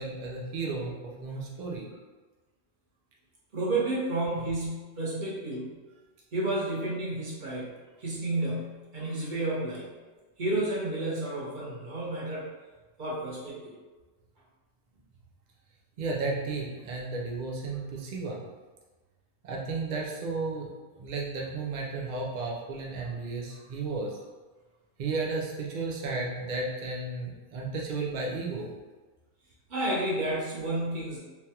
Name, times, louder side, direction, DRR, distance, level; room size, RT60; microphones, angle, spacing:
voice 1, 0.0-1.9 16.0-18.4 19.4-20.7 21.0-24.2 25.0-28.7, right 3 dB, 80° right, -3 dB, 0.4 m, -33 dB
voice 2, 3.5-5.6 6.3-7.7 8.0-9.9 10.4-12.5 13.0-13.7 23.5-23.6 29.7-31.2, right 2 dB, 45° right, -5 dB, 0.9 m, -31 dB
3.2 x 2.3 x 2.8 m, 1.3 s
omnidirectional pair, 1.3 m